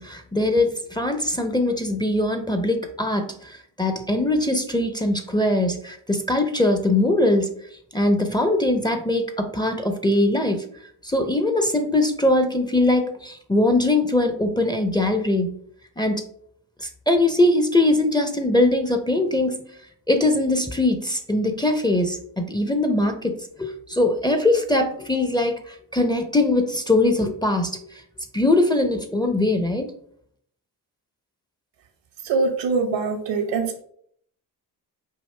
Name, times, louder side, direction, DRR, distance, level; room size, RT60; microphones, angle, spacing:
voice 1, 0.0-7.5 7.9-10.6 11.0-15.5 16.0-16.2 16.8-19.6 20.1-28.0 28.3-29.9, left 2 dB, 10° left, 6 dB, 0.5 m, -21 dB
voice 2, 32.2-33.8, right 4 dB, 70° right, 7 dB, 0.9 m, -23 dB
4.8 x 2.6 x 3.2 m, 0.64 s
supercardioid pair, 50°, 46 cm